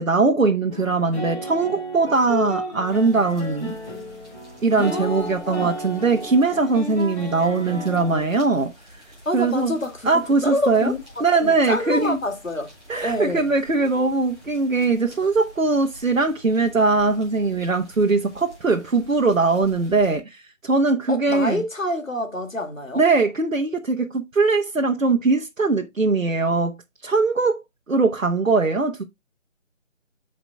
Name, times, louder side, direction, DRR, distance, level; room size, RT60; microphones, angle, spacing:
voice 1, 0.0-3.7 4.6-8.7 9.3-9.7 10.0-10.9 11.2-12.2 12.9-21.6 22.9-26.8 27.0-29.0, right 3 dB, 85° right, 1.2 m, -21 dB
sound 1, 0.7-8.2, equal, 15° left, 5.4 m, -33 dB
sound 2, 2.8-20.2, equal, ahead, 5.8 m, -48 dB
voice 2, 4.7-5.8 9.3-11.0 11.4-12.7 13.0-13.5 21.1-23.0, left 1 dB, 85° left, 2.4 m, -27 dB
14.0 x 5.0 x 2.3 m
figure-of-eight pair, 155°, 39 cm